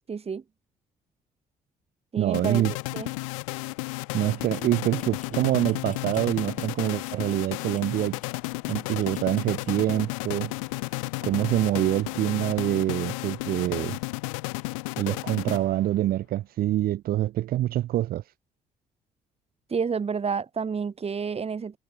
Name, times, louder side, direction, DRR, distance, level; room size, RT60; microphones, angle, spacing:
voice 1, 0.1-0.4 2.1-3.1 19.7-21.8, right 6 dB, 40° right, 1.7 m, -30 dB
voice 2, 2.2-2.7 4.1-8.2 8.7-10.5 11.2-14.0 15.0-18.2, right 14 dB, 65° right, 0.9 m, -25 dB
sound 1, 2.3-16.0, left 29 dB, 85° left, 2.1 m, -33 dB
sound 2, 4.5-9.8, left 7 dB, 50° left, 6.7 m, -55 dB
hypercardioid pair, 50°, 16 cm